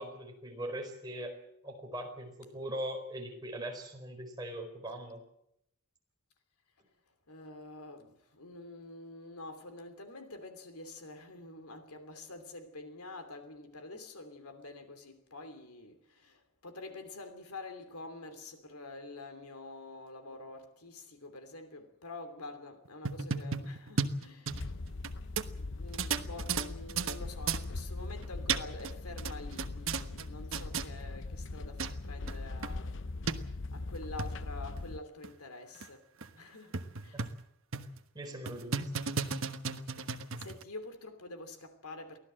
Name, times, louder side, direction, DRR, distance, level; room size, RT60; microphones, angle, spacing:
voice 1, 0.0-1.4 1.6-5.2 37.1-37.2 38.1-39.0, right 1 dB, 20° right, 4.7 m, -41 dB
voice 2, 7.3-24.7 25.5-33.0 33.7-36.1 36.3-37.3 40.0-42.2, left 2 dB, 80° left, 3.0 m, -47 dB
sound 1, 22.9-25.1 25.4-25.5 25.9-27.2 27.5-27.6 28.2-28.9 29.2-30.2 30.5-30.9 31.5-31.6 31.8-31.9 32.3-32.4 32.6-32.7 33.3-33.4 34.0-34.3 34.8-34.9 35.2-35.3 35.8-35.9 36.2-36.3 36.7-37.4 37.7-38.0 38.5-40.6, right 5 dB, 60° right, 1.2 m, -34 dB
sound 2, 24.5-35.0, left 2 dB, 55° left, 0.8 m, -41 dB
24.0 x 16.0 x 7.7 m
head